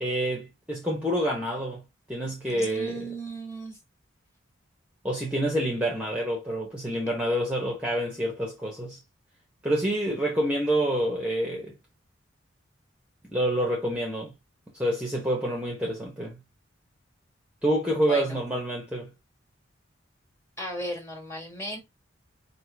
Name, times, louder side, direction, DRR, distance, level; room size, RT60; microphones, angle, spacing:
voice 1, 0.0-1.8 2.1-3.1 5.0-9.0 9.6-11.8 13.2-14.3 14.7-16.4 17.6-19.1, right 1 dB, 5° right, 0.9 m, -27 dB
voice 2, 2.5-3.8 17.9-18.4 20.6-21.8, right 1 dB, 15° left, 1.6 m, -36 dB
4.9 x 2.9 x 3.3 m
head